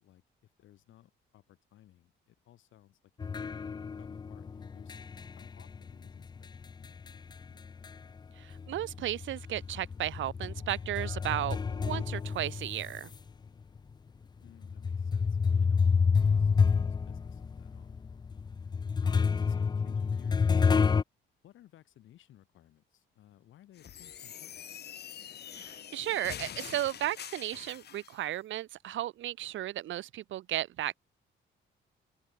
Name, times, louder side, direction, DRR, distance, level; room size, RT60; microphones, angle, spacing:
voice 1, 0.0-3.0 4.0-7.2 7.5-7.8 14.4-18.2 19.0-21.0 21.4-24.8, left 13 dB, 80° left, 4.6 m, -60 dB
sound 1, 3.2-8.2 8.5-13.2 13.8-13.9 14.6-21.0, left 5 dB, 20° left, 0.4 m, -29 dB
voice 2, 8.4-13.1 25.5-30.9, right 13 dB, 75° right, 1.0 m, -34 dB
sound 2, 23.8-28.2, left 9 dB, 55° left, 1.1 m, -45 dB
open air
cardioid pair, 90°, 20 cm